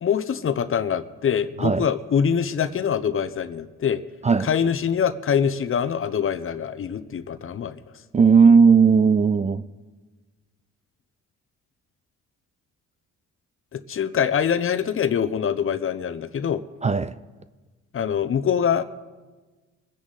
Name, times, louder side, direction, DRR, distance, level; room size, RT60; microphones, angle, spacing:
voice 1, 0.0-4.0 4.4-7.8 13.7-16.6 17.9-18.8, left 7 dB, 45° left, 0.8 m, -24 dB
voice 2, 8.1-9.6 16.8-17.2, right 5 dB, 25° right, 0.4 m, -16 dB
23.0 x 9.8 x 4.1 m
cardioid pair, 90°, 30 cm